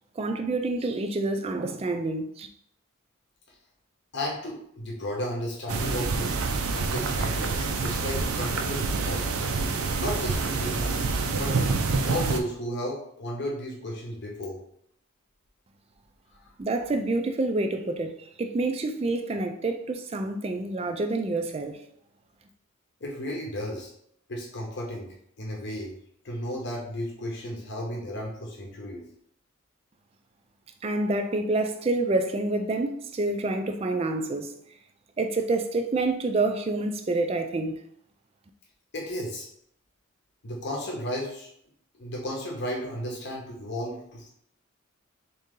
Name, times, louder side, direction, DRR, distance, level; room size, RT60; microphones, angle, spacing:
voice 1, 0.2-2.5 16.6-21.8 30.8-34.5 35.2-37.8, right 2 dB, 30° right, 0.3 m, -28 dB
voice 2, 4.1-6.3 6.7-9.2 9.9-11.7 12.0-14.6 23.0-23.9 24.3-25.9 26.2-29.0 38.9-39.5 40.4-41.5 42.0-44.3, equal, 55° left, 0.8 m, -34 dB
sound 1, 5.7-12.4, right 4 dB, 90° right, 0.5 m, -27 dB
3.7 x 2.7 x 3.6 m
head